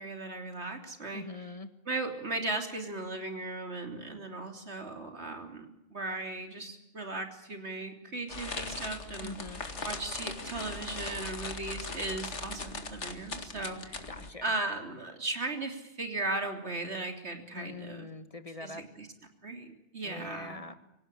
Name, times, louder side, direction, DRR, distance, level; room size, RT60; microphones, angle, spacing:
voice 1, 0.0-1.2 1.9-9.4 9.8-14.1 14.4-18.1 18.6-19.1 19.4-20.6, right 2 dB, 70° right, 4 dB, 3.6 m, -37 dB
voice 2, 1.1-1.7 9.2-9.6 14.1-14.5 17.5-18.9 20.0-20.7, left 3 dB, 30° left, 10 dB, 1.6 m, -43 dB
sound 1, 8.3-14.3, left 3 dB, 90° left, 2.4 m, -40 dB
25.5 x 17.0 x 10.0 m, 0.90 s
omnidirectional pair, 1.2 m